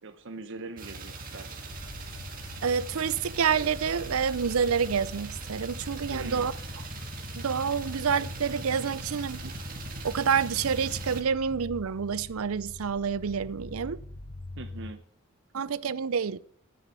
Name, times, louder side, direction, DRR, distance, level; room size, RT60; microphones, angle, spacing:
voice 1, 0.0-1.6 6.1-6.5 14.6-15.0, right 3 dB, 55° right, 0.9 m, -41 dB
sound 1, 0.8-11.2, right 2 dB, 40° right, 1.8 m, -40 dB
sound 2, 1.7-14.9, left 2 dB, 70° left, 1.1 m, -44 dB
voice 2, 2.6-6.5 7.4-9.5 10.0-14.0 15.5-16.4, right 6 dB, 75° right, 0.5 m, -28 dB
9.4 x 8.3 x 8.4 m
head